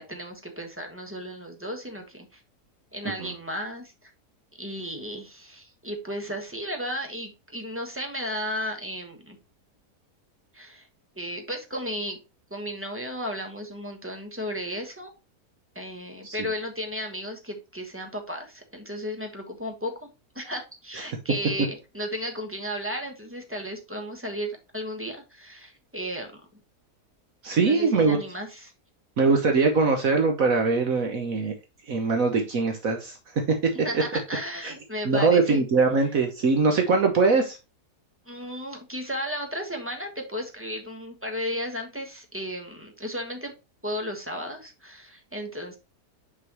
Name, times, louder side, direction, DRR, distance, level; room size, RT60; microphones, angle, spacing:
voice 1, 0.0-2.4 2.9-4.1 4.6-9.4 10.5-10.9 11.2-12.2 12.5-15.1 15.7-20.1 20.3-26.4 27.6-28.7 33.7-35.6 38.3-43.5 43.8-45.8, equal, 10° right, 3 dB, 1.2 m, -34 dB
voice 2, 27.4-28.2 29.2-31.5 31.9-33.2 33.6-33.7 35.0-37.6, right 4 dB, 60° right, 4 dB, 1.4 m, -22 dB
6.0 x 5.6 x 3.0 m, 0.28 s
omnidirectional pair, 1.7 m